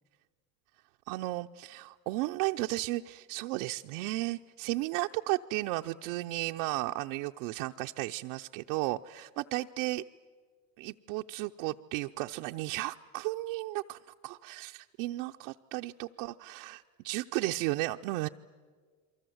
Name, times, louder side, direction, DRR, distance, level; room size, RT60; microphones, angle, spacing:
voice 1, 1.1-10.0 10.8-18.3, right 19 dB, 70° right, 3 dB, 0.7 m, -34 dB
29.0 x 23.5 x 7.9 m, 1.5 s
supercardioid pair, 115°, 38 cm